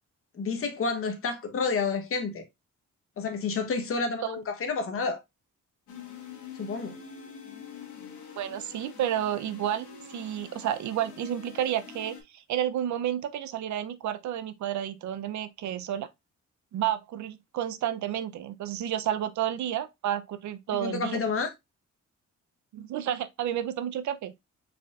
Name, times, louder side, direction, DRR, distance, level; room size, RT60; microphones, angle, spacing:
voice 1, 0.3-2.4 3.2-5.2 6.6-7.0 20.8-21.5, left 4 dB, 50° left, 1.0 m, -29 dB
sound 1, 5.9-12.2, left 6 dB, 85° left, 1.4 m, -45 dB
voice 2, 8.4-16.1 16.7-21.2 22.7-24.3, right 10 dB, 80° right, 0.6 m, -31 dB
4.2 x 4.1 x 2.4 m
wide cardioid pair, 155°, 29 cm